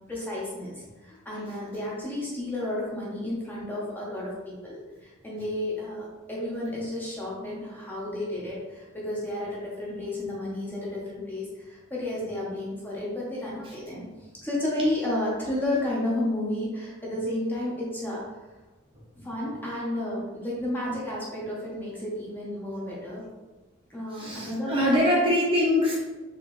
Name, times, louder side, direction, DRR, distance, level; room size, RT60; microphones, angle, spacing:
voice 1, 0.1-14.0 14.4-18.2 19.2-23.3 23.9-25.2, left 1 dB, 10° left, -5 dB, 0.9 m, -32 dB
voice 2, 24.1-26.0, left 1 dB, 25° right, -5 dB, 0.8 m, -23 dB
4.3 x 3.1 x 3.1 m, 1.2 s
head